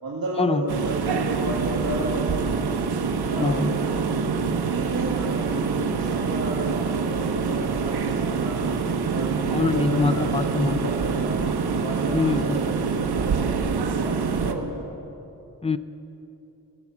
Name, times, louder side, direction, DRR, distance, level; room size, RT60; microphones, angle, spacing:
voice 1, 0.0-2.7 3.3-4.1 4.6-8.7 9.1-11.5 11.8-14.9, right 2 dB, 65° right, -5 dB, 1.9 m, -33 dB
sound 1, 0.7-14.5, right 5 dB, 85° right, 0.9 m, -25 dB
voice 2, 3.4-3.7 9.5-10.9 12.1-12.6 15.6-15.8, left 3 dB, 15° left, 12 dB, 0.4 m, -23 dB
17.0 x 7.0 x 8.2 m, 2.8 s
wide cardioid pair, 75°, 37 cm